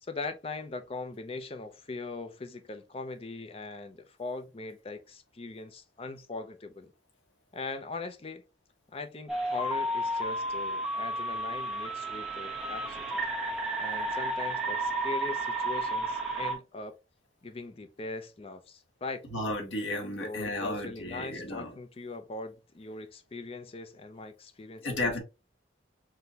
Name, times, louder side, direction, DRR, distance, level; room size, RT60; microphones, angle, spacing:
voice 1, 0.0-6.9 7.5-8.4 8.9-13.0 13.8-16.9 17.4-19.3 20.2-25.2, left 3 dB, 30° left, 0.5 m, -40 dB
sound 1, 9.3-16.6, right 1 dB, 5° right, 0.9 m, -32 dB
voice 2, 19.3-21.7 24.8-25.2, left 1 dB, 85° left, 1.2 m, -33 dB
5.9 x 2.2 x 2.8 m
head